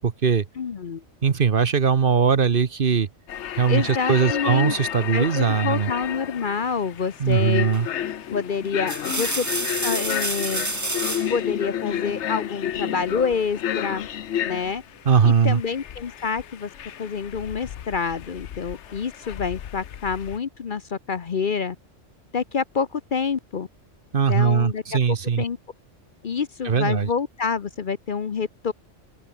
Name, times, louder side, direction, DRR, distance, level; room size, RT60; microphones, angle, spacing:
voice 1, 0.0-0.4 1.2-3.1 3.6-5.9 7.2-7.9 15.1-15.6 24.1-25.4 26.6-27.1, right 6 dB, 50° right, 1.1 m, -20 dB
voice 2, 0.6-1.0 3.7-4.7 5.0-7.7 8.3-9.5 9.8-10.7 11.3-14.1 14.4-14.8 15.2-16.7 17.0-21.8 22.3-23.7 24.3-24.8 25.1-25.6 26.2-28.7, left 5 dB, 45° left, 0.9 m, -27 dB
sound 1, 3.3-20.4, left 10 dB, 70° left, 1.1 m, -32 dB
sound 2, 7.7-8.0 8.6-11.4 12.8-13.5, right 2 dB, 15° right, 1.5 m, -29 dB
open air
omnidirectional pair, 1.3 m